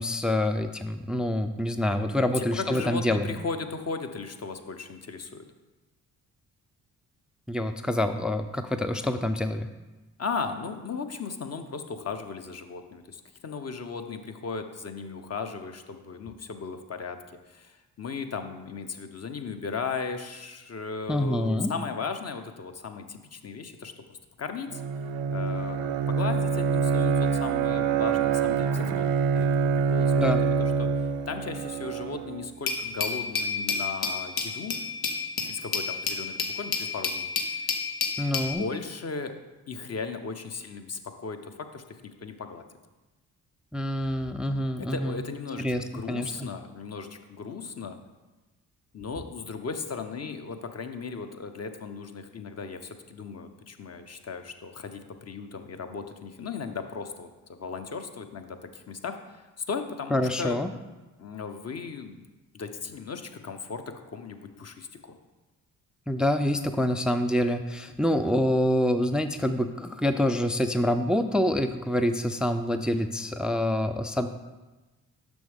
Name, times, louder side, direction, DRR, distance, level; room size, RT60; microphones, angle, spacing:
voice 1, 0.0-3.3 7.5-9.7 21.1-21.7 30.2-30.4 38.2-38.6 43.7-45.2 45.6-46.3 60.1-60.7 66.1-74.3, left 1 dB, ahead, 9 dB, 0.3 m, -26 dB
voice 2, 2.2-5.5 10.2-17.2 17.5-24.8 25.3-29.1 29.3-29.6 29.9-34.8 35.4-37.6 38.4-39.3 39.7-42.6 44.8-48.0 48.9-60.6 61.2-62.2 62.5-65.2, left 5 dB, 40° left, 7 dB, 0.8 m, -36 dB
Bowed string instrument, 24.7-32.5, right 6 dB, 85° right, 0.5 m, -26 dB
Glass, 32.7-38.5, left 4 dB, 75° left, 0.9 m, -30 dB
6.2 x 6.1 x 3.5 m, 1.1 s
hypercardioid pair, 45°, 41 cm